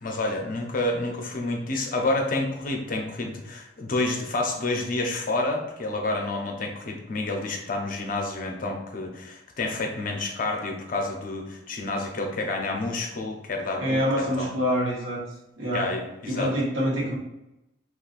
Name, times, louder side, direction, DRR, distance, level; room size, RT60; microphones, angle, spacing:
voice 1, 0.0-14.5 15.7-16.5, left 2 dB, 45° left, 2 dB, 0.5 m, -29 dB
voice 2, 13.8-15.2 15.6-15.9 16.3-17.2, equal, 85° right, -4 dB, 1.0 m, -26 dB
3.8 x 2.4 x 2.4 m, 0.90 s
head